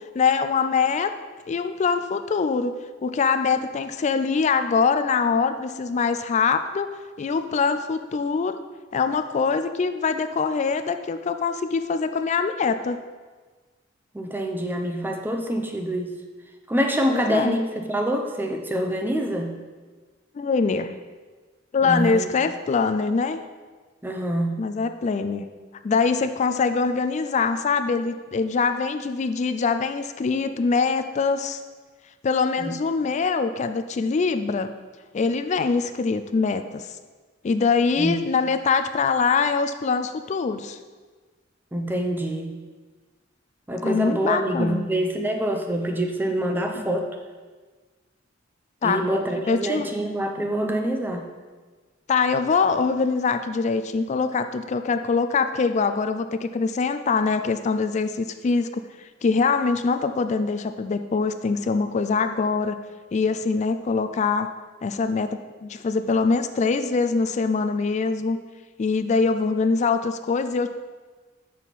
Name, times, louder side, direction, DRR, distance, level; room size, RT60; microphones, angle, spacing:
voice 1, 0.1-1.1 1.5-2.7 3.0-6.9 7.2-8.6 8.9-13.0 17.1-17.6 20.3-21.0 21.7-23.4 24.6-25.5 25.8-31.6 32.2-34.7 35.1-36.9 37.4-40.8 43.8-44.8 48.8-49.1 49.5-49.9 52.1-62.8 63.1-64.5 64.8-68.4 68.8-70.7, left 4 dB, 35° left, 9 dB, 0.3 m, -23 dB
voice 2, 14.1-16.1 16.7-19.5 21.8-22.3 24.0-24.6 32.6-32.7 38.0-38.2 41.7-42.6 43.7-47.1 48.8-51.3, right 1 dB, 10° right, 3 dB, 0.6 m, -26 dB
7.3 x 6.3 x 4.1 m, 1.4 s
head